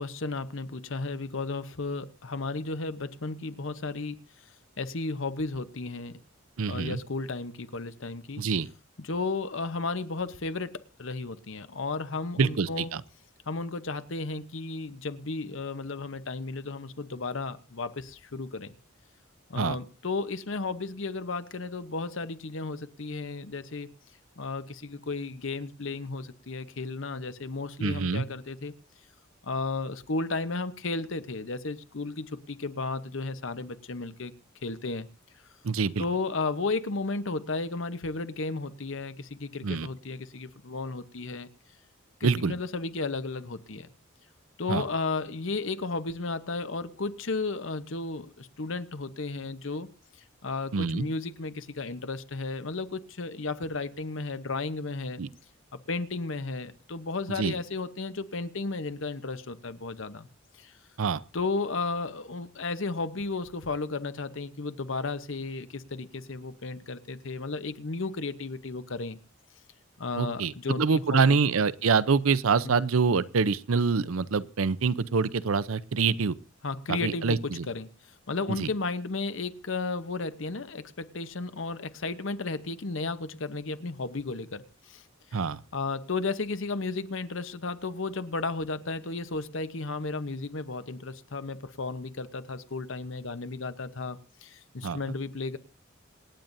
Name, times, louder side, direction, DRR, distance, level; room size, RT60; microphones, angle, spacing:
voice 1, 0.0-4.2 4.8-6.2 6.7-8.4 9.0-12.9 13.5-18.7 19.5-23.9 24.4-28.8 29.4-34.3 34.6-35.1 36.0-41.5 42.2-43.9 44.6-49.9 50.4-55.2 55.9-60.3 60.6-60.7 61.3-69.2 70.0-71.4 72.6-72.8 76.6-77.9 78.3-85.0 85.7-95.6, left 3 dB, 70° left, 0.9 m, -34 dB
voice 2, 6.6-7.0 8.4-8.7 12.4-13.0 19.6-19.8 27.8-28.2 35.6-36.0 39.6-39.9 42.2-42.5 44.7-44.8 50.7-51.1 55.2-55.3 57.4-57.5 61.0-61.2 70.2-70.5 70.8-76.3 76.9-77.7 78.6-78.7 85.3-85.6 94.8-95.0, right 5 dB, 85° right, 0.6 m, -25 dB
26.5 x 8.9 x 2.7 m
head